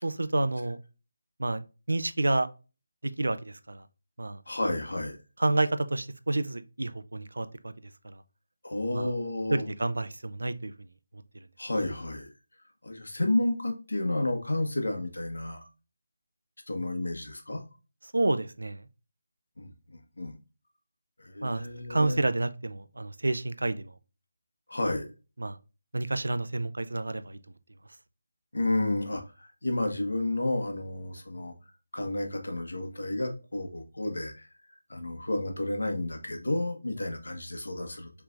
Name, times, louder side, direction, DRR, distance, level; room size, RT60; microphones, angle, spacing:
voice 1, 0.0-0.8 1.4-1.6 1.9-2.5 3.2-3.8 4.2-4.4 5.4-7.7 8.0-8.2 8.9-9.1 9.5-10.7 18.1-18.8 21.4-23.9 25.4-25.6 25.9-27.4, right 2 dB, 90° right, 0.5 m, -29 dB
voice 2, 4.5-5.2 8.6-9.6 11.6-12.3 12.8-15.7 16.7-17.6 19.6-20.3 21.2-22.2 24.7-25.1 28.5-31.5 31.9-38.1, left 2 dB, 90° left, 1.2 m, -31 dB
4.6 x 3.3 x 2.5 m
figure-of-eight pair, 170°, 0 cm